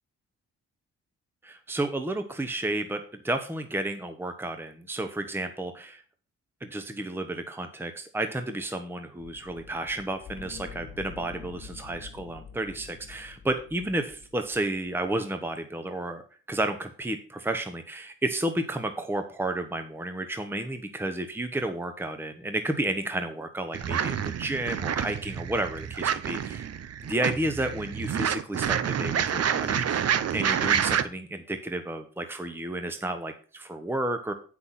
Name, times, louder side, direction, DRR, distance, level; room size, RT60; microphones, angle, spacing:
voice 1, 1.4-6.0 6.6-16.2 16.5-26.7 27.1-30.1 30.3-34.3, right 1 dB, 5° right, 7 dB, 0.9 m, -32 dB
sound 1, 9.2-15.2, left 6 dB, 85° left, 2.0 m, -46 dB
sound 2, 23.7-31.0, right 8 dB, 55° right, 0.7 m, -28 dB
7.9 x 6.1 x 5.8 m, 0.40 s
cardioid pair, 85°, 29 cm